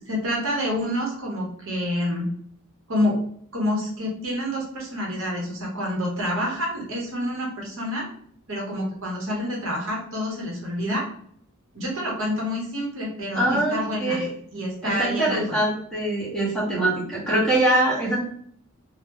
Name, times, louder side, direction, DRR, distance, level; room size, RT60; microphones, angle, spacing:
voice 1, 0.1-2.3 2.9-3.2 3.5-8.1 8.5-11.1 11.7-14.3 14.5-15.6, left 1 dB, 65° right, -2 dB, 1.0 m, -28 dB
voice 2, 13.3-14.3 14.8-18.2, right 1 dB, 5° left, -7 dB, 1.2 m, -23 dB
2.9 x 2.2 x 3.5 m, 0.62 s
head